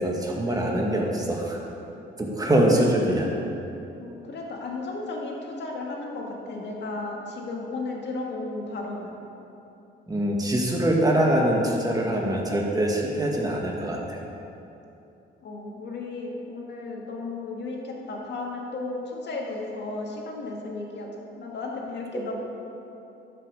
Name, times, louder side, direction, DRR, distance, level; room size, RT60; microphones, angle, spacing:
voice 1, 0.0-1.6 2.2-3.3 10.1-14.2, right 1 dB, 20° right, -1 dB, 1.9 m, -23 dB
voice 2, 2.7-3.4 4.0-9.2 15.4-22.4, left 3 dB, 60° left, -1 dB, 2.1 m, -34 dB
13.0 x 6.7 x 5.0 m, 2.9 s
cardioid pair, 90°, 20 cm